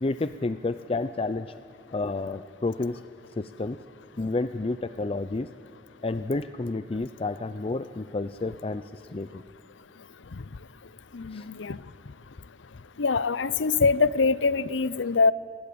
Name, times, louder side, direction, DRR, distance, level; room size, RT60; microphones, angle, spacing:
voice 1, 0.0-1.5 1.9-3.0 3.4-3.8 4.2-5.5 6.0-9.4 11.3-11.5, left 3 dB, 30° left, 12 dB, 0.5 m, -30 dB
voice 2, 11.1-11.8 13.0-15.3, left 4 dB, 80° left, 19 dB, 0.6 m, -23 dB
28.0 x 20.5 x 8.6 m, 2.5 s
head